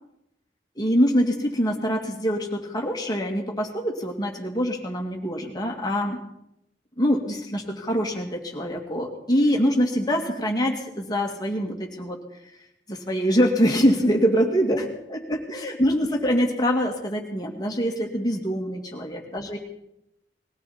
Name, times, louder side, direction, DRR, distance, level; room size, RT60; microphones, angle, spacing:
voice 1, 0.8-6.2 7.0-12.2 12.9-19.6, equal, 20° left, 1 dB, 2.2 m, -24 dB
20.5 x 16.0 x 4.4 m, 0.82 s
head